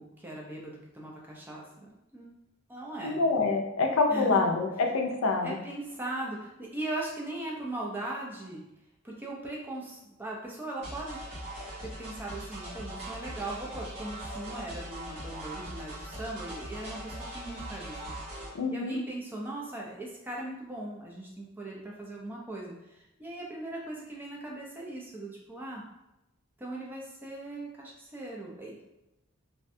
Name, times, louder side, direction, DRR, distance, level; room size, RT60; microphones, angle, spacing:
voice 1, 0.0-2.3 2.7-3.2 4.1-4.4 5.4-8.6 9.0-11.2 11.8-18.1 18.7-25.8 26.6-28.8, right 2 dB, 10° right, -3 dB, 0.4 m, -39 dB
voice 2, 3.0-5.6 18.5-19.0, left 3 dB, 80° left, 3 dB, 0.4 m, -26 dB
sound 1, 10.8-18.5, right 1 dB, 30° right, 1.0 m, -41 dB
2.5 x 2.1 x 2.6 m, 0.94 s
head